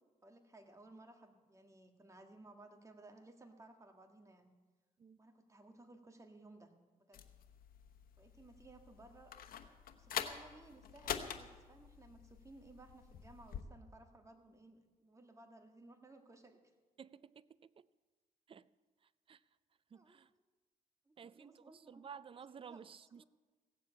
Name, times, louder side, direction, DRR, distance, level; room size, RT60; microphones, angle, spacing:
voice 1, 0.2-4.5 5.2-7.3 8.2-9.3 9.9-16.6 19.9-20.2 21.1-22.1 22.5-23.2, right 2 dB, 20° right, 1.8 m, -59 dB
sound 1, 7.1-13.6, left 9 dB, 80° left, 1.0 m, -46 dB
voice 2, 17.0-17.5 18.5-18.7 19.3-19.4 19.9-20.3 21.2-23.2, right 7 dB, 40° right, 0.4 m, -53 dB
16.0 x 7.4 x 8.5 m
cardioid pair, 90°, 15 cm